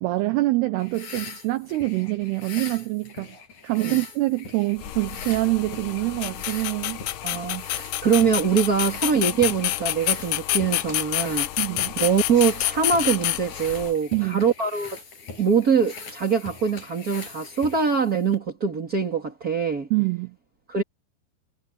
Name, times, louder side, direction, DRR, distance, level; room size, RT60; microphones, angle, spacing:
voice 1, 0.0-3.3 3.6-7.0 11.6-12.0 14.1-14.5 19.9-20.4, right 20 dB, 80° right, 2.4 m, -25 dB
sound 1, 0.8-18.4, left 4 dB, 40° left, 8.5 m, -42 dB
sound 2, 4.8-13.9, left 16 dB, 85° left, 2.3 m, -28 dB
voice 2, 7.2-11.5 12.0-15.0 15.4-19.9 20.7-20.8, right 6 dB, 25° right, 2.3 m, -23 dB
omnidirectional pair, 5.6 m